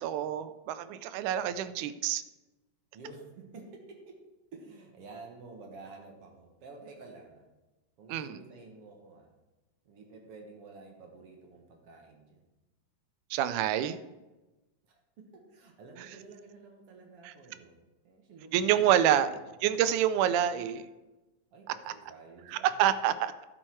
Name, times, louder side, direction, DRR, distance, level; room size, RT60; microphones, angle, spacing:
voice 1, 0.0-2.2 8.1-8.4 13.3-14.0 17.2-17.3 18.5-20.9 21.9-22.0 22.6-23.3, right 10 dB, 85° right, 13 dB, 2.0 m, -27 dB
voice 2, 2.9-4.2 4.5-7.5 8.0-9.3 9.9-12.4 14.9-17.8 18.0-19.6 21.5-22.8, right 3 dB, 55° right, 1 dB, 2.1 m, -50 dB
11.5 x 6.4 x 4.5 m, 1.1 s
omnidirectional pair, 3.5 m